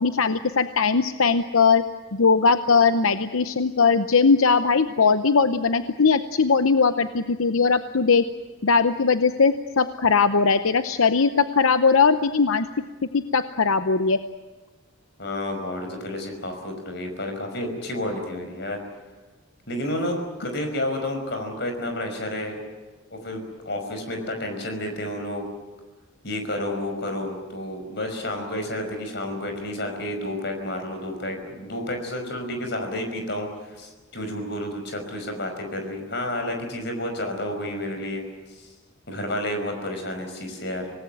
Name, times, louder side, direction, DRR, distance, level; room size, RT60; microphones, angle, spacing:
voice 1, 0.0-1.8 2.1-8.2 8.6-12.7 13.1-14.2, left 5 dB, 85° left, 10 dB, 0.8 m, -20 dB
voice 2, 15.2-18.8 19.7-22.6 23.1-25.5 26.2-38.2 38.5-38.7 39.1-40.9, left 1 dB, 55° left, 5 dB, 5.4 m, -30 dB
26.5 x 19.0 x 9.2 m, 1.2 s
head